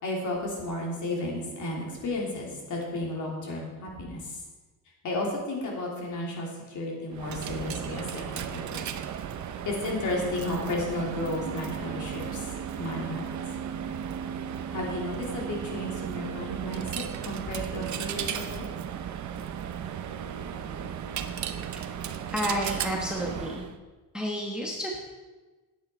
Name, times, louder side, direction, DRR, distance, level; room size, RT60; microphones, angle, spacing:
voice 1, 0.0-4.4 5.0-8.9 9.6-12.5 12.8-13.3 14.7-18.7, left 1 dB, 50° left, -1 dB, 3.2 m, -33 dB
Coin (dropping), 7.1-23.8, right 8 dB, 45° right, 0.7 m, -35 dB
voice 2, 22.3-23.7 24.1-25.0, equal, ahead, -1 dB, 1.1 m, -30 dB
14.5 x 9.2 x 4.5 m, 1.3 s
cardioid pair, 175°, 39 cm